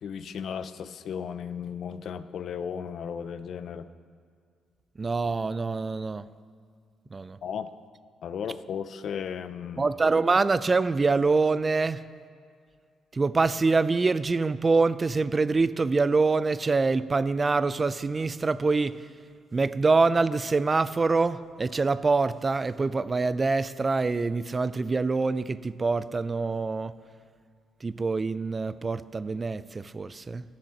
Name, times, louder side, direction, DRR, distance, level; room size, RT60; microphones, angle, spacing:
voice 1, 0.0-3.9 7.4-7.7 8.2-9.9, left 7 dB, 65° left, 13 dB, 0.5 m, -35 dB
voice 2, 5.0-6.3 7.1-7.4 9.8-12.0 13.1-19.0 19.5-26.9 27.8-30.4, right 3 dB, 30° right, 15 dB, 0.4 m, -25 dB
11.5 x 7.4 x 5.8 m, 2.2 s
cardioid pair, 90°, 0 cm